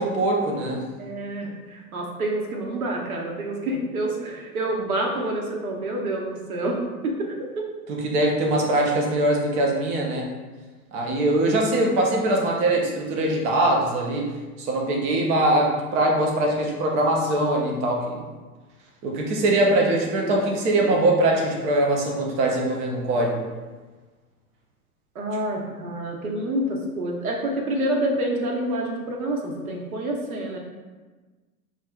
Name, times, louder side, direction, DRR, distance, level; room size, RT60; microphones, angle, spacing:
voice 1, 0.0-0.8 8.0-10.3 10.9-14.3 14.6-18.2 19.0-23.4, right 1 dB, 20° right, 1 dB, 0.3 m, -22 dB
voice 2, 1.0-7.7 20.1-21.0 25.1-30.6, right 1 dB, 70° right, 0 dB, 0.9 m, -28 dB
6.2 x 2.4 x 2.2 m, 1.3 s
figure-of-eight pair, 90°, 44 cm